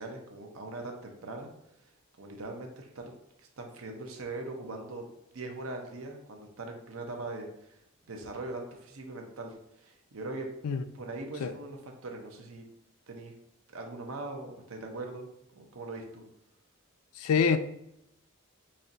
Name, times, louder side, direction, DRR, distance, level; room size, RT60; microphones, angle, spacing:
voice 1, 0.0-1.5 1.8-1.9 2.2-3.1 3.4-5.0 5.3-7.8 8.1-10.5 10.9-12.6 13.1-13.3 13.7-16.2, right 2 dB, 80° right, 0.7 m, -41 dB
voice 2, 17.2-17.6, left 6 dB, 90° left, 0.3 m, -25 dB
4.2 x 3.0 x 2.6 m
head